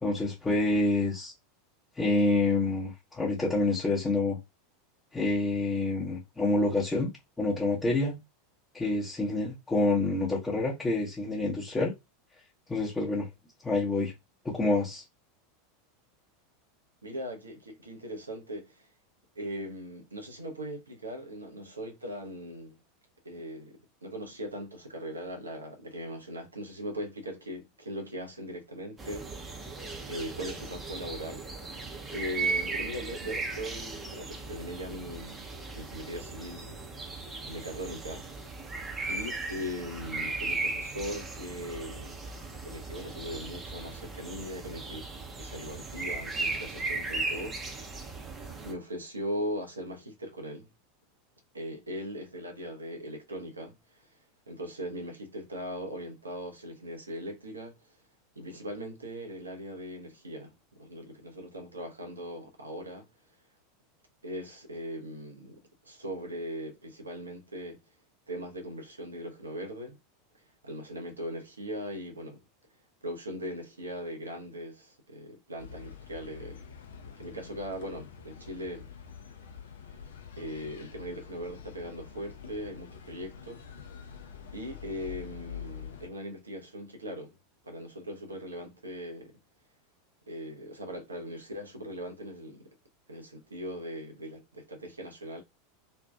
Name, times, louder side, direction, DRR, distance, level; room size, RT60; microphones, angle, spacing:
voice 1, 0.0-1.3 2.0-4.4 5.1-7.1 7.4-8.2 8.7-11.9 12.7-13.3 13.6-14.1 14.4-15.0, left 2 dB, 15° left, 0.8 m, -27 dB
voice 2, 17.0-18.9 19.4-22.8 23.2-29.8 30.1-31.5 32.1-36.9 37.5-38.3 39.1-42.2 42.6-45.1 45.4-47.6 48.6-50.7 51.5-54.2 54.5-58.0 58.4-63.1 64.2-65.6 65.8-67.8 68.3-70.0 70.3-72.4 73.0-76.6 77.2-78.9 80.4-83.6 84.5-87.4 87.6-89.3 90.3-92.7 93.1-95.4, equal, 80° right, 0.5 m, -39 dB
sound 1, 29.0-48.7, right 3 dB, 15° right, 0.6 m, -37 dB
sound 2, 75.6-86.1, left 7 dB, 65° left, 0.4 m, -46 dB
2.6 x 2.2 x 2.2 m
figure-of-eight pair, 85°, 0 cm